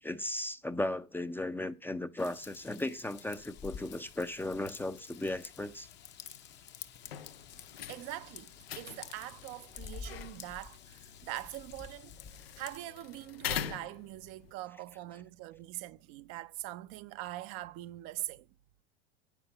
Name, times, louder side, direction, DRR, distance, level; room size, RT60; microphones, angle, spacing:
voice 1, 0.0-5.9, left 1 dB, 5° left, 0.5 m, -36 dB
Raindrop / Vehicle horn car horn honking / Trickle dribble, 2.2-12.8, left 7 dB, 35° left, 0.8 m, -50 dB
sound 1, 7.0-14.5, left 10 dB, 80° left, 0.6 m, -44 dB
voice 2, 7.9-12.1 12.6-18.5, right 15 dB, 50° right, 0.6 m, -43 dB
9.2 x 6.0 x 5.5 m
hypercardioid pair, 85°, 29 cm